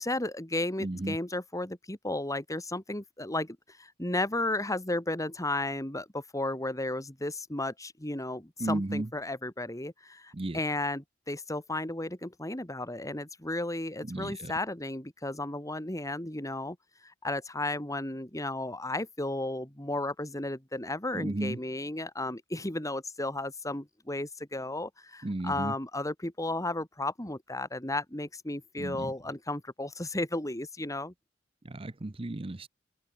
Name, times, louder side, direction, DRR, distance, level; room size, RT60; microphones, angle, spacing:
voice 1, 0.0-16.8 17.0-31.1, left 2 dB, 15° left, 3.2 m, -34 dB
voice 2, 0.8-1.1 8.6-9.0 10.4-10.6 14.1-14.3 21.2-21.5 25.2-25.7 28.8-29.1 31.7-32.7, right 2 dB, 30° right, 0.7 m, -33 dB
head